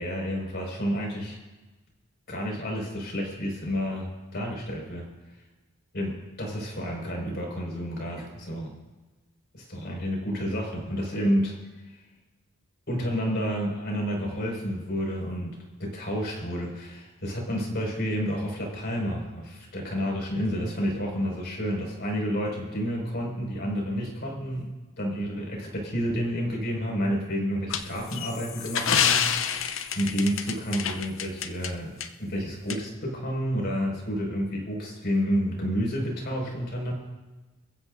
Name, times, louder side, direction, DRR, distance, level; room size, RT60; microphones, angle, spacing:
voice 1, 0.0-1.4 2.3-5.0 5.9-8.7 9.5-11.5 12.9-24.7 25.0-29.2 29.9-31.9 32.2-36.9, equal, 50° left, -1 dB, 5.8 m, -30 dB
sound 1, 27.7-31.7 32.0-32.1 32.7-32.8, left 8 dB, 65° left, 0.8 m, -27 dB
27.0 x 15.0 x 2.7 m, 1.2 s
head